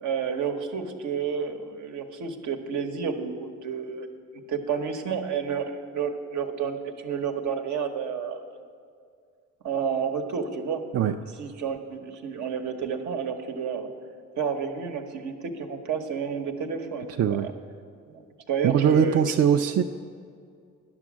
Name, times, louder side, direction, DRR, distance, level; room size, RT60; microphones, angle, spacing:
voice 1, 0.0-4.1 4.5-8.4 9.6-10.8 11.4-13.9 14.4-17.5 18.1-19.2, right 6 dB, 75° right, 4 dB, 1.1 m, -30 dB
voice 2, 17.2-17.5 18.6-19.8, right 8 dB, 50° right, 5 dB, 0.5 m, -21 dB
10.5 x 6.1 x 7.4 m, 2.2 s
cardioid pair, 90°, 30 cm